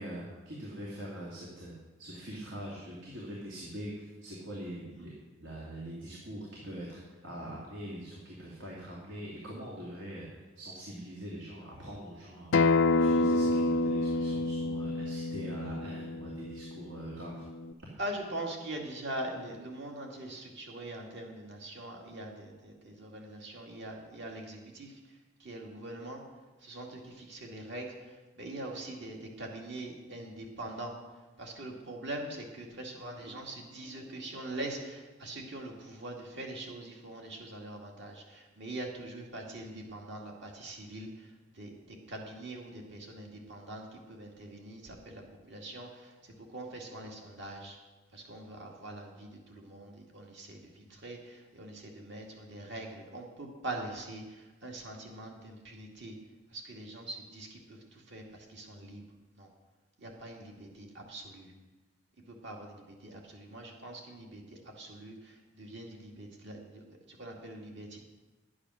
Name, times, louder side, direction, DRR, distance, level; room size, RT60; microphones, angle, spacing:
voice 1, 0.0-5.1 5.4-12.5 12.8-17.4, right 1 dB, 85° right, -4 dB, 2.5 m, -43 dB
Acoustic guitar, 12.5-17.7, left 2 dB, 70° left, 0.5 m, -28 dB
voice 2, 18.0-26.2 26.6-30.9 31.4-47.8 48.1-56.2 56.5-59.0 59.4-59.5 60.0-61.5 62.3-68.0, right 1 dB, 60° right, 0 dB, 2.3 m, -43 dB
11.5 x 8.8 x 6.3 m, 1.2 s
head